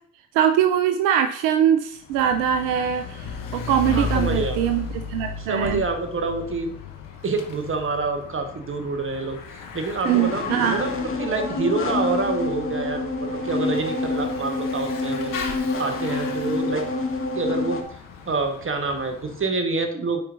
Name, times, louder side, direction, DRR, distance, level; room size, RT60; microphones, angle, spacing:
voice 1, 0.3-5.8 10.1-10.8, right 9 dB, 80° right, 8 dB, 0.5 m, -22 dB
Bicycle / Mechanisms, 2.0-19.6, left 5 dB, 75° left, 1.0 m, -36 dB
voice 2, 3.9-4.6 5.4-6.7 7.2-15.3 15.8-16.8 17.3-17.8 18.3-20.2, right 3 dB, 40° right, 5 dB, 1.4 m, -27 dB
sound 1, 10.0-17.8, left 3 dB, 40° left, 1.2 m, -27 dB
9.7 x 4.7 x 2.6 m, 0.62 s
hypercardioid pair, 40°, 33 cm